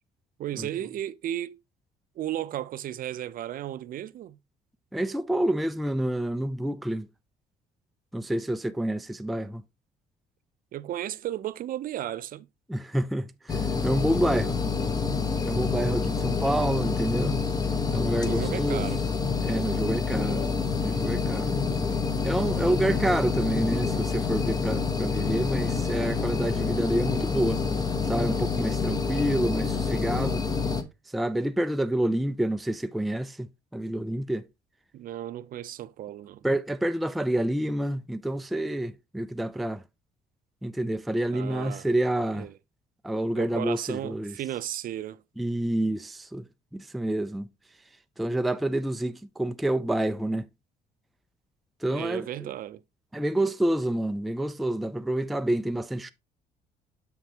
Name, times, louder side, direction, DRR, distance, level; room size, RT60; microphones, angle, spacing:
voice 1, 0.4-1.6 2.2-4.4 10.7-12.5 18.2-19.0 34.9-36.4 41.3-41.9 42.3-42.5 43.4-45.2 51.9-52.8, right 12 dB, 55° right, 0.5 m, -34 dB
voice 2, 4.9-7.1 8.1-9.6 12.7-14.6 15.4-17.4 17.9-18.8 19.4-21.6 22.2-27.6 28.1-30.4 31.1-34.4 36.4-39.8 40.6-42.5 43.0-44.3 45.4-46.4 46.7-47.5 48.2-50.5 51.8-52.3 53.1-56.1, right 1 dB, ahead, 0.3 m, -28 dB
sound 1, 13.5-30.8, left 5 dB, 25° left, 0.8 m, -27 dB
6.5 x 5.9 x 2.8 m
cardioid pair, 110°, 17 cm